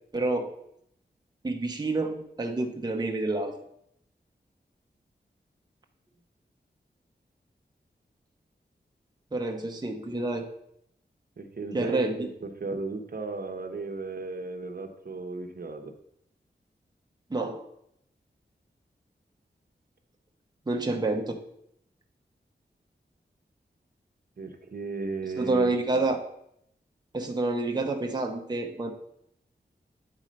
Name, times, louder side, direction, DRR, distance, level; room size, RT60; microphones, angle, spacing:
voice 1, 0.1-0.5 1.4-3.5 9.3-10.5 11.7-12.3 17.3-17.6 20.7-21.4 25.4-26.2 27.1-28.9, right 2 dB, 20° right, 2 dB, 0.7 m, -28 dB
voice 2, 11.4-15.9 24.4-26.0, right 3 dB, 55° right, 5 dB, 0.9 m, -35 dB
8.8 x 4.2 x 5.2 m, 0.74 s
wide cardioid pair, 100°, 18 cm